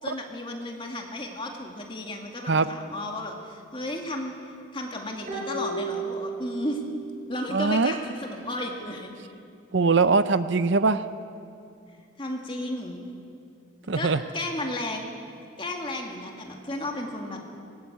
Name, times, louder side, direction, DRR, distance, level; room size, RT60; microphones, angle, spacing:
voice 1, 0.0-6.8 7.3-9.1 12.2-13.0 13.9-15.1 15.6-17.4, left 1 dB, 25° left, 1 dB, 2.2 m, -33 dB
sound 1, 5.3-6.9 7.2-7.3, right 3 dB, 35° right, 6.3 m, -33 dB
voice 2, 7.5-7.9 9.7-11.0 13.9-14.2, right 4 dB, 65° right, 13 dB, 0.6 m, -22 dB
19.0 x 18.5 x 8.2 m, 2.4 s
head